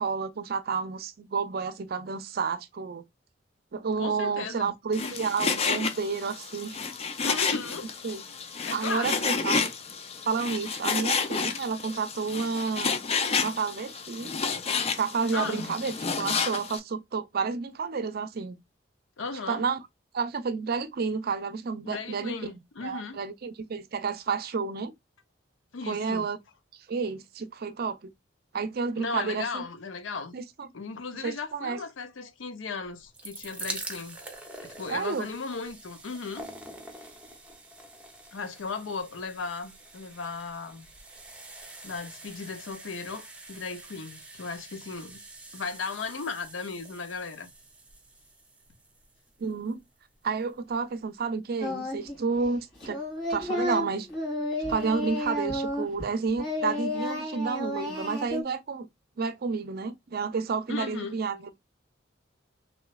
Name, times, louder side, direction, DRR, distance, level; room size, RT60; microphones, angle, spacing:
voice 1, 0.0-3.0 3.7-6.8 8.0-8.2 8.7-9.7 10.2-13.0 13.4-14.3 15.0-18.6 19.5-19.8 20.1-22.4 22.8-24.9 25.8-26.4 26.9-28.0 28.5-29.6 30.3-30.7 31.2-31.8 34.9-35.3 49.4-49.8 50.2-53.0 53.3-54.1 54.7-58.9 59.2-61.6, right 5 dB, 55° right, 0.5 m, -30 dB
voice 2, 4.0-4.7 5.0-5.2 5.7-6.0 7.2-7.9 8.3-8.4 8.7-9.5 15.3-15.6 19.2-19.6 21.8-23.2 25.7-26.3 29.0-30.3 30.7-34.2 34.6-36.4 38.3-40.9 41.8-45.2 45.5-47.5 60.7-61.2, left 4 dB, 85° left, 0.6 m, -36 dB
Frying (food), 4.9-16.8, left 5 dB, 35° left, 0.4 m, -30 dB
sound 1, 32.9-49.9 50.7-50.8 51.0-51.1, right 2 dB, 5° right, 0.7 m, -45 dB
Singing, 51.6-52.2 52.4-56.1 56.4-58.4, left 1 dB, 65° left, 1.9 m, -31 dB
3.1 x 3.0 x 2.3 m
head